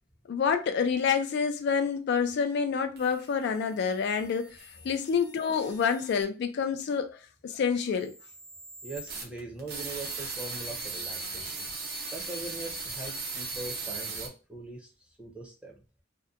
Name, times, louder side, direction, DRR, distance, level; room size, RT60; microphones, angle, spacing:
voice 1, 0.3-4.6 4.8-8.1, left 6 dB, 60° left, 0.3 m, -28 dB
sound 1, 3.0-6.2 7.8-14.3, right 3 dB, 55° right, 0.7 m, -39 dB
voice 2, 8.8-11.7 12.1-14.9 15.2-15.7, right 2 dB, 5° right, 0.6 m, -41 dB
2.7 x 2.1 x 2.4 m
head